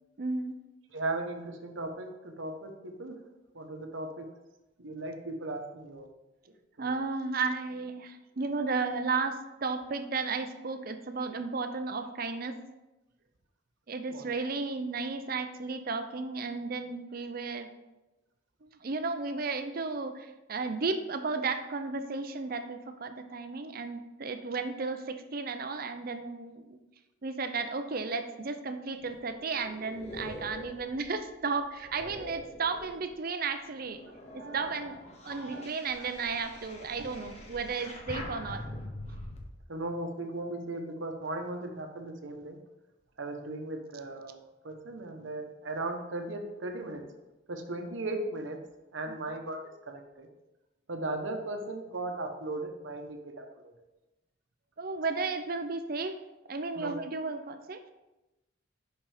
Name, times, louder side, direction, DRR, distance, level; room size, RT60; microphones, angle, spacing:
voice 1, 0.2-0.6 6.8-9.3 9.6-12.5 13.9-17.7 18.6-26.8 27.2-34.0 34.3-35.0 35.2-38.6 49.1-49.2 54.8-56.2 56.5-57.8, right 4 dB, 50° right, 8 dB, 0.6 m, -34 dB
voice 2, 0.9-3.2 3.5-4.3 4.8-6.1 6.8-6.9 14.1-14.3 34.4-34.9 35.4-35.7 36.0-36.1 37.0-37.1 37.8-37.9 39.7-42.6 43.2-47.0 47.5-48.6 48.9-50.3 50.9-53.7 56.7-56.9, right 2 dB, 85° right, 4 dB, 1.0 m, -37 dB
sound 1, 29.0-33.2 33.7-39.4, left 1 dB, 35° left, 1.1 m, -44 dB
6.3 x 5.5 x 4.9 m, 1.0 s
head